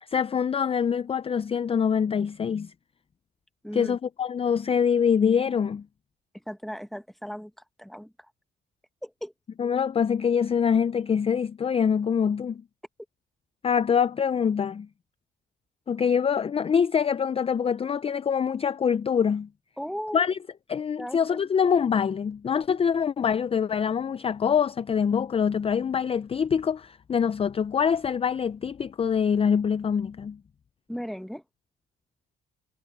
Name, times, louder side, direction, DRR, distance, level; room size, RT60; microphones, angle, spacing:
voice 1, 0.1-2.7 3.7-5.8 9.6-12.6 13.6-14.9 15.9-19.5 20.1-20.4 20.7-30.4, left 7 dB, 30° left, 0.4 m, -24 dB
voice 2, 3.6-4.0 6.5-7.5 7.8-8.1 9.0-9.3 19.8-20.3 21.0-21.4 30.9-31.4, equal, ahead, 1.5 m, -36 dB
cardioid pair, 90°, 20 cm